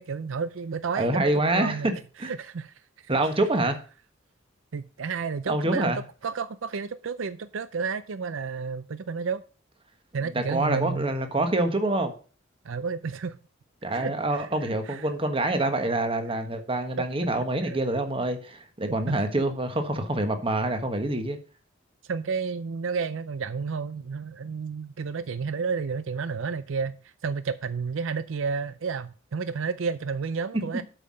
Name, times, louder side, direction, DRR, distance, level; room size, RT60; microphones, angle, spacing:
voice 1, 0.0-1.9 2.2-2.7 4.7-5.9 6.2-9.4 10.1-11.5 12.6-13.4 13.9-15.1 17.6-17.8 18.9-19.2 22.1-30.8, right 5 dB, 75° right, 0.5 m, -31 dB
voice 2, 1.0-1.9 2.2-2.3 3.1-3.8 5.5-6.0 10.3-12.1 13.8-21.4 30.5-30.6, right 2 dB, 30° right, 1.3 m, -26 dB
8.2 x 5.7 x 6.3 m
head